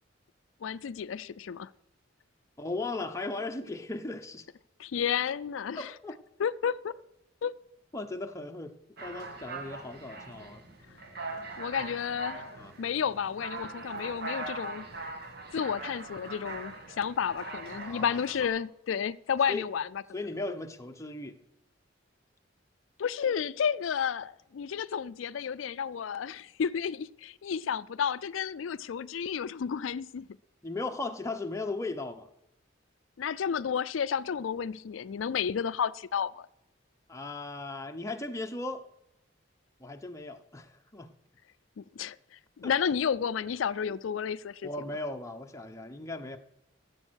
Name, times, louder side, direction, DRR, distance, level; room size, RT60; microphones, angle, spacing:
voice 1, 0.6-1.7 4.8-5.9 6.4-6.9 7.4-7.5 11.6-15.1 15.5-19.9 23.0-30.3 33.2-36.5 41.8-44.7, left 7 dB, 85° left, 0.4 m, -32 dB
voice 2, 2.6-4.5 5.8-6.1 7.9-10.6 11.8-11.9 12.5-12.7 17.8-18.2 19.5-19.6 20.1-21.4 30.6-32.3 37.1-38.8 39.8-41.1 42.6-42.7 44.6-46.4, left 2 dB, 15° left, 0.9 m, -37 dB
sound 1, 9.0-18.5, right 3 dB, 55° right, 1.7 m, -41 dB
14.5 x 7.6 x 6.3 m
head